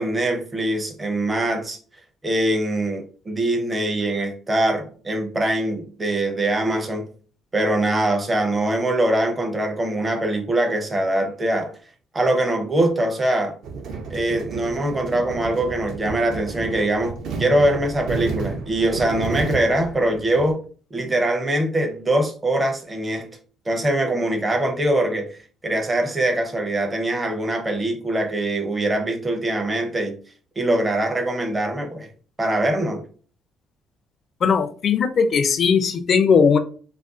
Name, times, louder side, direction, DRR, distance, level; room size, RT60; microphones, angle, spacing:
voice 1, 0.0-1.8 2.2-7.1 7.5-11.7 12.1-13.5 14.1-20.6 20.9-23.3 23.7-25.4 25.6-30.2 30.6-32.1 32.4-33.0, right 1 dB, 20° right, 0.5 m, -23 dB
sound 1, 13.6-20.5, right 4 dB, 65° right, 0.6 m, -32 dB
voice 2, 34.4-36.6, left 6 dB, 40° left, 0.4 m, -18 dB
2.5 x 2.1 x 3.6 m
cardioid pair, 140°, 0 cm